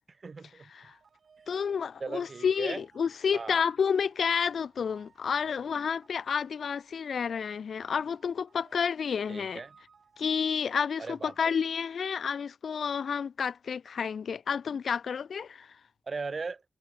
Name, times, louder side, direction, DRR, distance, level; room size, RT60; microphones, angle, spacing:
voice 1, 0.1-0.7 2.0-2.8 3.3-3.6 9.3-9.8 11.0-11.6 16.1-16.6, right 4 dB, 50° right, 0.4 m, -38 dB
sound 1, 0.8-10.7, right 5 dB, 70° right, 3.6 m, -62 dB
voice 2, 1.5-9.6 10.2-15.7, left 6 dB, 80° left, 0.5 m, -30 dB
cardioid pair, 75°, 0 cm